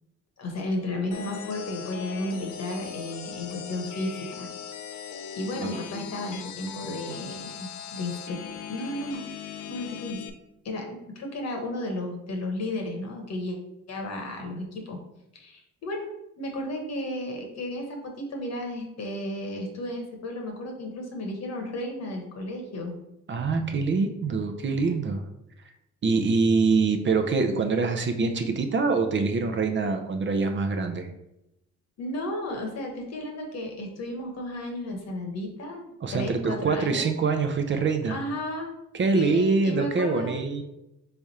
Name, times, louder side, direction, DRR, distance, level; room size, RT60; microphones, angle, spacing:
voice 1, 0.4-4.5 5.3-8.4 8.7-9.2 9.7-10.2 10.6-13.6 13.9-15.0 15.3-16.1 16.4-23.0 32.0-37.1 38.1-38.7 39.1-40.4, left 1 dB, 60° left, 2 dB, 1.2 m, -33 dB
sound 1, 1.1-10.3, left 8 dB, 85° left, 0.5 m, -39 dB
voice 2, 23.3-25.2 26.0-31.1 36.0-38.2 38.9-40.6, right 4 dB, 40° right, 6 dB, 0.6 m, -25 dB
3.6 x 3.4 x 4.2 m, 0.86 s
cardioid pair, 90°, 30 cm